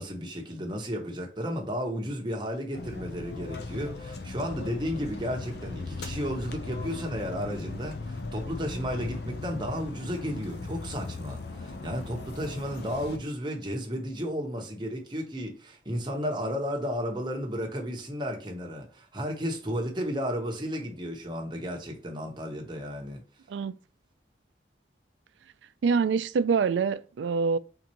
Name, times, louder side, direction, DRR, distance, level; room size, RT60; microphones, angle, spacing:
voice 1, 0.0-23.2, equal, 25° right, 1.0 m, -33 dB
sound 1, 2.7-13.2, left 3 dB, 65° left, 0.7 m, -38 dB
voice 2, 25.8-27.6, right 5 dB, 90° right, 0.4 m, -25 dB
4.3 x 3.8 x 3.0 m
head